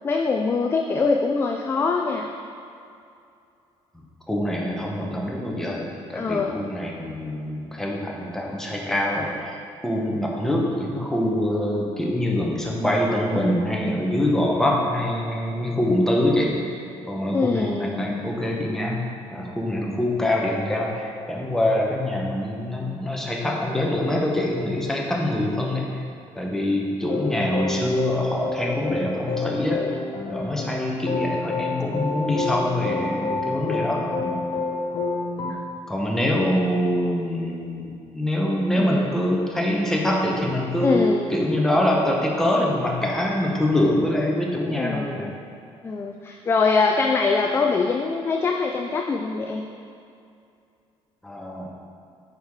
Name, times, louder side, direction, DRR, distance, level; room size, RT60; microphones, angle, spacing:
voice 1, 0.0-2.3 6.1-6.6 17.3-18.1 35.5-35.6 38.8-39.1 40.8-41.3 44.8-45.3 45.8-49.6, left 4 dB, 20° left, 1 dB, 0.4 m, -23 dB
voice 2, 4.3-19.0 19.3-26.0 26.4-29.9 30.3-34.4 35.9-41.0 41.3-45.3 51.2-51.7, left 1 dB, 5° left, -2 dB, 0.9 m, -24 dB
sound 1, 27.0-35.5, left 3 dB, 45° left, 0.7 m, -29 dB
8.5 x 4.8 x 3.6 m, 2.5 s
cardioid pair, 155°, 11 cm